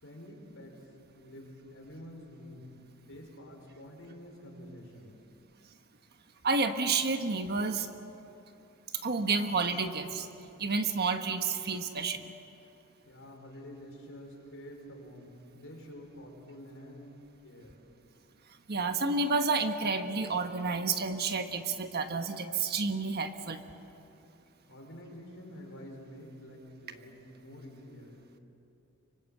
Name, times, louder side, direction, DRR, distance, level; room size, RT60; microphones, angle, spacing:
voice 1, 0.0-2.7 3.0-5.1 13.0-17.1 17.4-17.7 24.7-28.4, equal, 65° left, 0 dB, 5.5 m, -48 dB
voice 2, 6.4-7.9 9.0-10.3 10.6-12.3 18.7-23.6, right 4 dB, 50° right, 7 dB, 1.4 m, -30 dB
25.0 x 24.5 x 8.0 m, 2.8 s
head